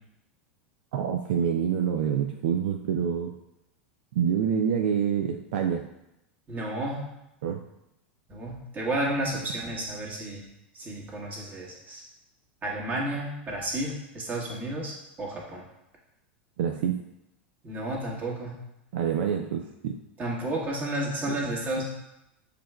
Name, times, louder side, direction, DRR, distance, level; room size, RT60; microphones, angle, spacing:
voice 1, 0.9-3.3 4.1-5.9 7.4-7.6 16.6-17.0 18.9-19.9 21.3-21.4, right 8 dB, 65° right, 3 dB, 0.3 m, -26 dB
voice 2, 6.5-7.0 8.3-10.5 10.7-12.0 12.6-15.6 17.6-18.5 20.2-21.8, right 1 dB, 30° right, -3 dB, 1.5 m, -32 dB
6.7 x 3.2 x 2.2 m, 0.87 s
hypercardioid pair, 95°, 6 cm